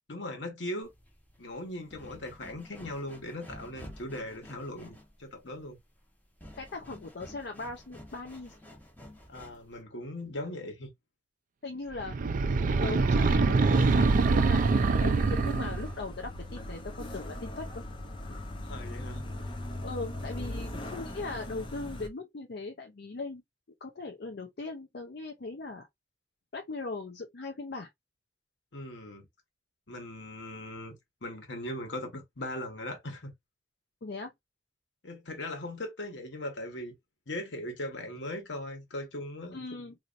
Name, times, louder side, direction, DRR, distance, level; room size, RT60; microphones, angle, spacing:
voice 1, 0.1-0.9 1.4-4.9 5.2-5.8 9.3-10.9 18.6-19.2 28.7-29.3 29.9-30.9 31.2-33.3 35.0-36.9 37.3-39.6, left 1 dB, 80° left, 1.3 m, -39 dB
sound 1, 0.8-9.8, left 1 dB, 10° left, 1.2 m, -51 dB
voice 2, 6.6-8.6 11.6-12.2 12.5-17.8 18.3-18.5 19.8-23.4 23.8-25.9 26.5-27.9 34.0-34.3 39.5-40.0, left 3 dB, 60° left, 0.6 m, -39 dB
sound 2, 12.0-15.9, right 4 dB, 50° right, 0.4 m, -24 dB
sound 3, 13.7-22.1, left 1 dB, 30° left, 0.7 m, -39 dB
4.1 x 2.8 x 2.5 m
head